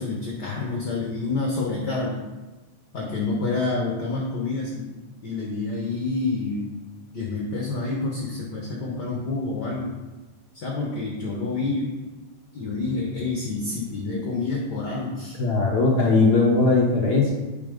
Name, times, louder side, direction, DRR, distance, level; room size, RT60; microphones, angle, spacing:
voice 1, 0.0-2.2 2.9-4.9 5.2-6.7 7.1-9.9 10.5-12.0 12.5-15.4, left 3 dB, 55° left, -1 dB, 1.2 m, -28 dB
voice 2, 15.4-17.3, left 3 dB, 75° left, -2 dB, 0.9 m, -19 dB
9.4 x 6.3 x 5.3 m, 1.1 s
omnidirectional pair, 3.5 m